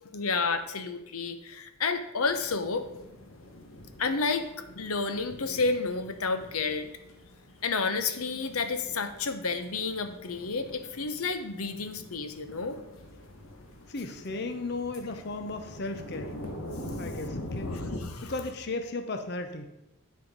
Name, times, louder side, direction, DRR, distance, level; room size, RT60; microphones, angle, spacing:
voice 1, 0.0-2.9 4.0-4.5 4.8-6.9 7.6-12.8 17.6-18.3, left 4 dB, 85° left, 9 dB, 0.9 m, -30 dB
sound 1, 2.3-18.0, left 1 dB, 70° left, 1.3 m, -44 dB
voice 2, 13.9-16.3 17.0-17.9 18.2-19.6, left 2 dB, 50° left, 7 dB, 0.7 m, -35 dB
9.8 x 5.6 x 5.4 m, 0.89 s
head